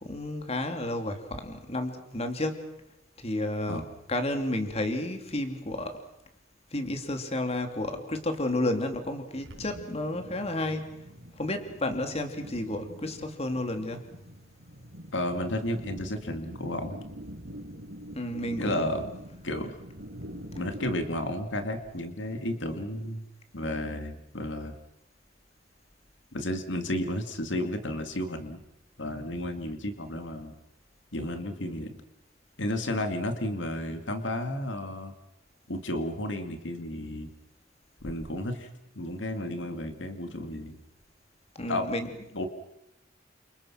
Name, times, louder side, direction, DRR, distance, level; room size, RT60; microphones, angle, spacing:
voice 1, 0.0-2.7 3.2-3.8 4.1-6.0 6.7-10.9 11.3-14.0 18.1-18.9 41.5-42.1, left 1 dB, 35° left, 6 dB, 3.0 m, -31 dB
sound 1, 9.3-21.1, equal, 85° right, 4.6 m, -45 dB
voice 2, 15.1-17.0 18.6-19.0 19.4-19.8 20.6-23.2 23.5-24.7 26.3-28.6 29.0-30.5 31.1-32.0 32.6-35.1 35.7-37.3 38.0-38.7 39.0-40.8 41.7-41.9 42.3-42.5, left 1 dB, 90° left, 7 dB, 2.2 m, -32 dB
29.0 x 27.0 x 6.0 m, 0.80 s
head